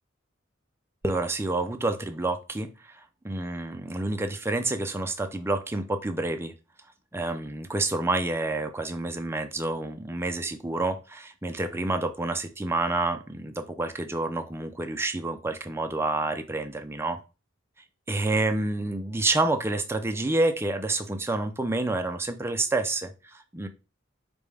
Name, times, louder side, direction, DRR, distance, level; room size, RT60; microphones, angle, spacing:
voice 1, 1.0-6.5 7.1-17.2 18.1-23.7, right 2 dB, 10° right, 6 dB, 0.4 m, -28 dB
5.1 x 2.2 x 3.3 m, 0.31 s
head